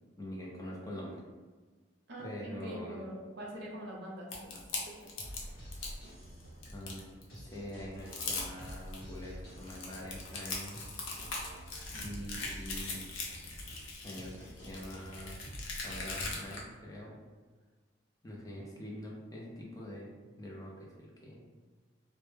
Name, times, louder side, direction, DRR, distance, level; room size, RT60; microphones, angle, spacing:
voice 1, 0.2-1.2 2.2-3.0 6.7-10.9 12.0-13.0 14.0-15.4 15.8-17.2 18.2-21.4, left 1 dB, 20° left, -3 dB, 0.4 m, -45 dB
voice 2, 2.1-5.1 11.9-12.5, right 1 dB, 60° right, -2 dB, 0.6 m, -45 dB
sound 1, 4.3-6.0 6.4-7.2 7.7-7.8 8.0-9.0 9.5-16.6, left 3 dB, 85° left, 0.5 m, -40 dB
sound 2, 5.2-16.1, equal, 55° left, 0.9 m, -48 dB
2.1 x 2.0 x 3.1 m, 1.3 s
head